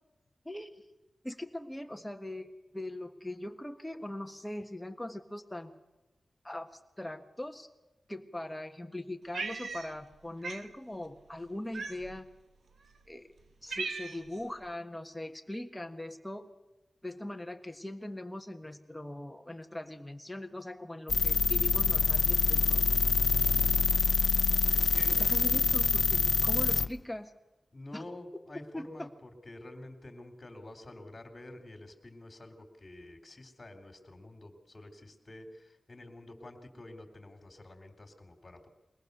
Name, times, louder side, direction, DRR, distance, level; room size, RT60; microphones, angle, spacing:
voice 1, 0.4-0.9 1.2-5.7 6.4-6.7 7.0-7.7 8.1-12.3 13.1-13.3 13.6-16.5 17.0-22.8 25.2-27.3 27.9-28.0 28.7-29.1, left 1 dB, 10° left, 5 dB, 1.5 m, -41 dB
Cat, 9.3-10.1 10.4-10.7 11.7-12.3 13.0-13.1 13.4-14.4, right 4 dB, 85° right, 1.1 m, -38 dB
sound 1, 21.1-26.9, left 4 dB, 55° left, 0.7 m, -26 dB
voice 2, 23.2-23.7 24.7-25.8 27.7-38.7, left 1 dB, 30° left, 5 dB, 3.3 m, -48 dB
22.5 x 19.0 x 6.7 m, 1.0 s
wide cardioid pair, 100°, 0 cm